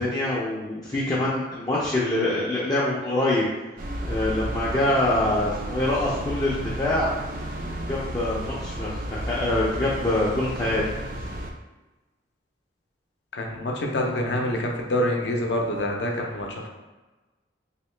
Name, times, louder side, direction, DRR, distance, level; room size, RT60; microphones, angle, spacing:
voice 1, 0.0-3.5 4.0-7.1 7.9-10.8, left 1 dB, 20° left, -7 dB, 0.4 m, -25 dB
sound 1, 3.8-11.5, right 1 dB, 45° right, 0.3 m, -33 dB
voice 2, 13.3-16.7, left 1 dB, 70° left, 1 dB, 0.6 m, -26 dB
3.0 x 2.8 x 3.2 m, 1.2 s
head